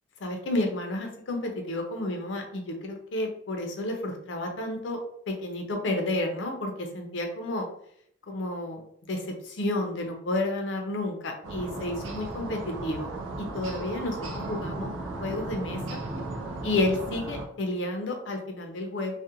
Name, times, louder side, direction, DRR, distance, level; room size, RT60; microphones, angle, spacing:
voice 1, 0.2-5.0 5.3-7.7 8.3-13.1 13.4-14.9 15.2-16.0 16.6-19.1, left 2 dB, 75° left, 3 dB, 0.5 m, -31 dB
sound 1, 11.4-17.5, right 2 dB, 90° right, 0.5 m, -36 dB
2.4 x 2.1 x 2.8 m, 0.68 s
head